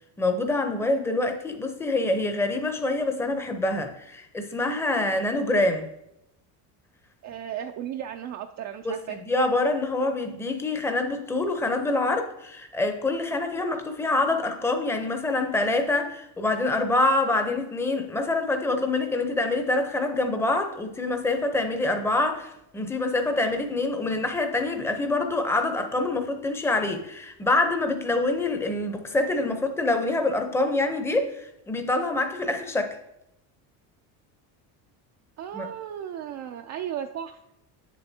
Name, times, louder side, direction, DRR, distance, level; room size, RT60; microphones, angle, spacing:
voice 1, 0.2-5.9 8.8-32.9 35.5-35.7, left 2 dB, 5° left, 5 dB, 0.7 m, -26 dB
voice 2, 7.2-9.2 35.4-37.4, right 10 dB, 45° right, 5 dB, 0.4 m, -35 dB
7.7 x 7.0 x 2.8 m, 0.83 s
supercardioid pair, 115°, 41 cm